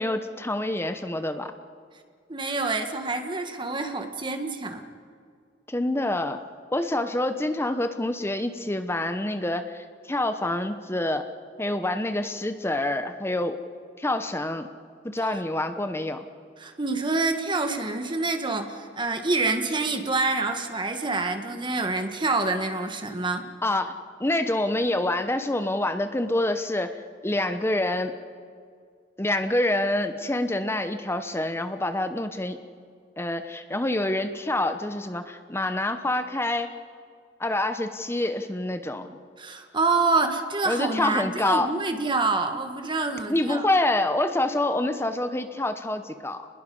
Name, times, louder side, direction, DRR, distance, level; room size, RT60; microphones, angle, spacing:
voice 1, 0.0-1.5 5.7-6.4 6.7-11.3 11.6-13.6 14.0-14.7 15.0-16.2 23.6-28.2 29.2-32.6 33.2-36.7 37.4-39.2 40.7-41.7 43.3-46.5, left 1 dB, 15° left, 9 dB, 0.9 m, -27 dB
voice 2, 2.3-4.8 16.6-23.5 39.4-43.7, right 3 dB, 25° right, 6 dB, 1.5 m, -27 dB
29.0 x 21.0 x 5.5 m, 2.2 s
head